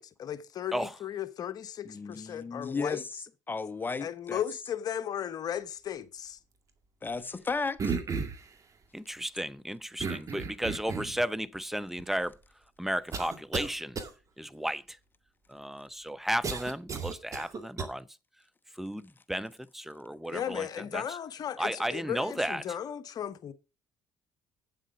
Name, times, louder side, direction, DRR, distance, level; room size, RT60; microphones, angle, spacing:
voice 1, 0.0-3.0 4.0-6.4 20.3-23.5, left 9 dB, 50° left, 1.1 m, -36 dB
voice 2, 1.8-3.0 3.5-4.4 7.0-8.0, left 4 dB, 25° left, 1.0 m, -34 dB
sound 1, 7.8-8.5 10.0-11.2 12.0-12.1 13.1-13.7 14.0-14.1 16.4-17.9, right 5 dB, 40° right, 2.1 m, -33 dB
voice 3, 8.9-12.3 12.8-14.0 14.4-14.8 15.5-18.0 18.8-20.7 20.9-21.0 21.6-22.6, equal, 5° right, 0.7 m, -34 dB
8.8 x 7.5 x 5.0 m
supercardioid pair, 70°, 8 cm